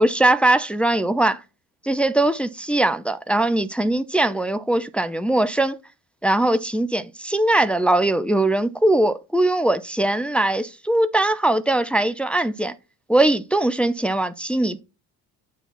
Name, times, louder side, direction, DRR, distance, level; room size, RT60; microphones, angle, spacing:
voice 1, 0.0-1.4 1.8-5.8 6.2-12.7 13.1-14.8, right 1 dB, 5° left, 0.3 m, -20 dB
7.2 x 2.8 x 5.6 m
hypercardioid pair, 50°, 49 cm